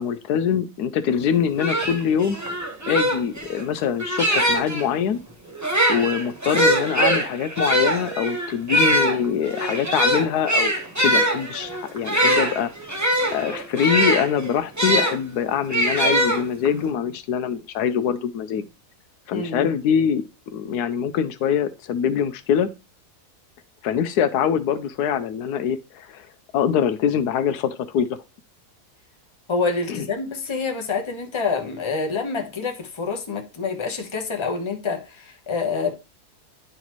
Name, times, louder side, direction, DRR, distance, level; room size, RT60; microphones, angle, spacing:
voice 1, 0.0-2.4 2.9-5.2 5.9-10.7 11.0-12.7 13.3-18.6 19.3-20.2 20.5-22.7 23.8-26.3 26.5-28.1 29.9-30.0, left 8 dB, 80° left, 1.1 m, -24 dB
sound 1, 1.2-1.3 1.6-4.8 5.5-15.1 15.7-16.8, right 1 dB, 10° right, 1.0 m, -22 dB
voice 2, 19.3-19.7 29.5-35.9, left 4 dB, 20° left, 0.9 m, -27 dB
10.5 x 4.0 x 3.0 m
omnidirectional pair, 1.7 m